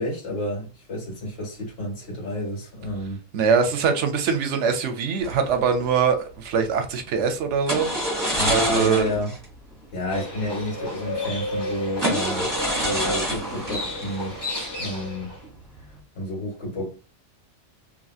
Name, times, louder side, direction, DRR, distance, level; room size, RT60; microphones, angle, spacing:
voice 1, 0.0-3.2 8.3-9.3 9.9-14.4 14.7-15.3 16.1-16.9, left 1 dB, 55° left, 1.7 m, -30 dB
voice 2, 3.3-7.9 8.1-9.1 14.6-14.7, right 6 dB, 75° right, 0.9 m, -23 dB
sound 1, 5.2-6.0 7.7-9.4 9.7-9.8 10.3-10.4 11.1-11.2 11.9-15.1 15.4-15.8, equal, 20° right, 1.4 m, -27 dB
Livestock farm animals working animals, 10.1-15.4, left 1 dB, 20° left, 1.0 m, -32 dB
3.0 x 2.7 x 2.3 m
omnidirectional pair, 1.3 m